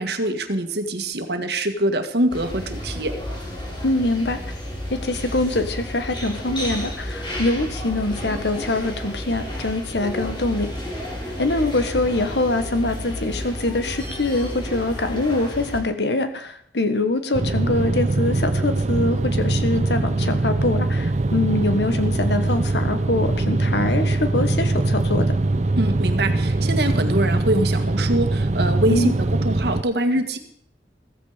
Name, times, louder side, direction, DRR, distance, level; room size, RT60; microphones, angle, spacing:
voice 1, 0.0-3.1 25.8-30.4, right 1 dB, 65° right, 7 dB, 1.8 m, -24 dB
sound 1, 2.3-15.8, equal, 25° left, 4.8 m, -32 dB
voice 2, 3.8-4.4 4.9-10.7 11.4-25.3 28.9-29.2, left 2 dB, 75° left, 8 dB, 1.5 m, -24 dB
sound 2, 17.3-29.8, right 2 dB, 40° right, 0.6 m, -22 dB
15.5 x 15.0 x 5.1 m, 0.64 s
head